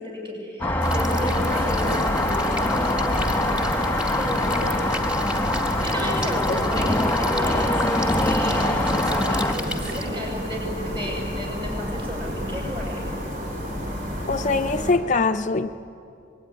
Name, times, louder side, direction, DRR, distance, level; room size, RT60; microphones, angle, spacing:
voice 1, 0.0-3.1 4.2-4.6 5.8-13.0, equal, 25° right, -1 dB, 7.9 m, -33 dB
sound 1, 0.6-9.5, left 1 dB, 10° left, 1.6 m, -24 dB
sound 2, 0.8-10.0, left 1 dB, 5° right, 2.2 m, -35 dB
sound 3, 0.8-14.9, equal, 50° right, 4.8 m, -31 dB
voice 2, 14.3-15.7, left 3 dB, 40° left, 8 dB, 0.5 m, -22 dB
26.0 x 21.0 x 10.0 m, 2.7 s
head